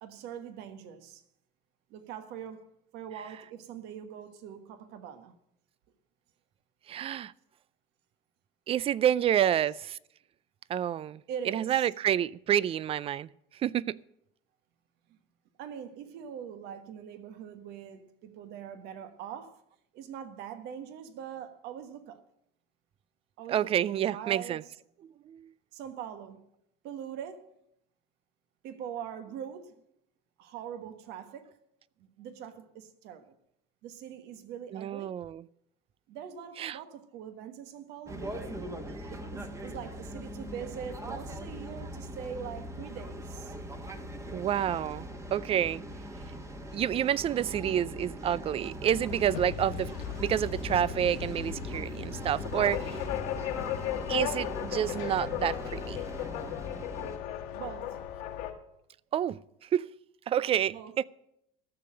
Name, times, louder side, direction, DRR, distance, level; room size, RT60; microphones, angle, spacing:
voice 1, 0.0-1.2 1.9-5.3 9.1-9.6 11.3-11.9 15.1-15.2 15.6-19.6 19.9-22.2 23.4-24.7 25.7-26.4 26.8-27.6 28.6-29.8 30.4-31.5 32.0-33.4 33.8-35.2 36.1-38.6 39.1-43.5 57.5-58.0 60.7-61.0, right 8 dB, 60° right, 1.4 m, -43 dB
voice 2, 6.9-7.3 8.7-9.7 10.7-11.2 11.5-13.3 13.6-14.0 23.5-24.6 25.3-25.5 34.7-35.4 36.6-36.8 44.3-45.8 46.7-49.9 50.2-53.0 54.1-56.0 59.1-59.4 59.7-59.9 60.3-61.0, right 10 dB, 30° right, 0.4 m, -28 dB
sound 1, 38.1-57.2, equal, 15° right, 1.4 m, -41 dB
sound 2, 49.1-58.5, left 10 dB, 85° left, 1.8 m, -36 dB
13.5 x 6.8 x 7.6 m
supercardioid pair, 110°, 19 cm